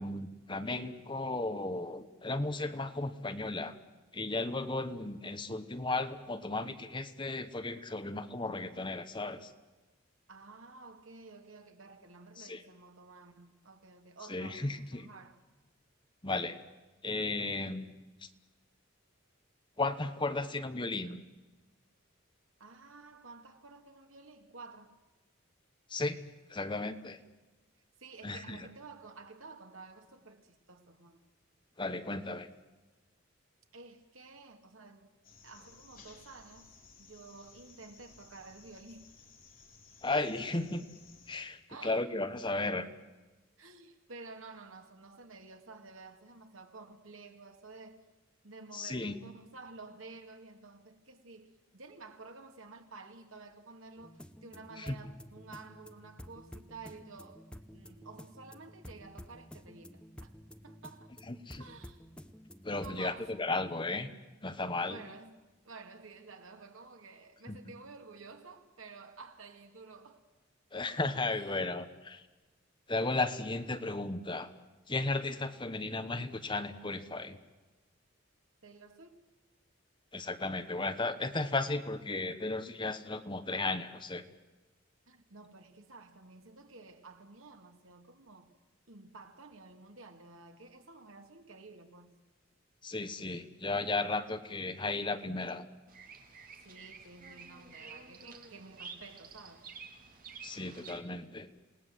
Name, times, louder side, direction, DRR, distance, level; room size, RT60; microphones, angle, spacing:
voice 1, 0.0-3.7 4.1-9.5 12.4-12.6 14.3-15.1 16.2-16.6 17.0-17.9 18.2-18.3 19.8-21.2 25.9-26.2 26.5-27.2 28.2-28.7 31.8-32.5 40.0-40.8 41.3-42.9 48.7-49.1 54.8-55.0 61.3-61.6 62.6-64.1 64.4-65.0 67.5-67.6 70.7-72.2 72.9-74.5 74.9-77.4 80.1-84.2 92.8-95.7 100.4-101.5, left 2 dB, 25° left, 1.1 m, -35 dB
voice 2, 10.3-15.4 22.6-25.0 28.0-31.2 33.7-35.1 35.4-39.1 41.7-42.0 43.6-48.1 48.4-57.5 57.7-60.3 60.6-61.1 61.6-62.0 62.7-63.3 64.9-65.4 65.6-70.2 70.9-71.0 71.4-71.7 78.6-79.3 85.1-88.5 88.9-92.2 96.6-99.7, right 3 dB, 85° right, 2.3 m, -52 dB
sound 1, 35.2-41.4, left 5 dB, 45° left, 3.5 m, -58 dB
sound 2, 54.0-63.2, equal, 5° left, 0.8 m, -51 dB
Bird vocalization bird call bird song, 95.9-101.0, right 5 dB, 45° right, 2.5 m, -50 dB
28.0 x 18.5 x 7.7 m
head